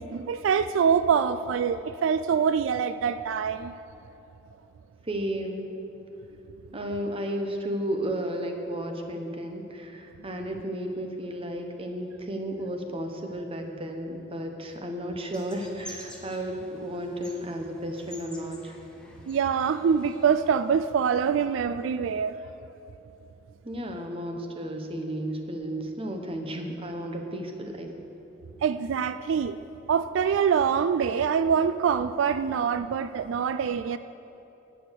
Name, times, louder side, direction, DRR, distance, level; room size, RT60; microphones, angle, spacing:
voice 1, 0.0-3.7 19.3-22.4 28.6-29.6 29.9-34.0, right 7 dB, 80° right, 12 dB, 0.3 m, -25 dB
voice 2, 5.0-5.8 6.7-18.7 23.6-27.9, right 1 dB, 30° right, 4 dB, 1.0 m, -33 dB
sound 1, 15.3-20.5, left 1 dB, 5° left, 1.4 m, -48 dB
10.5 x 8.7 x 6.6 m, 3.0 s
head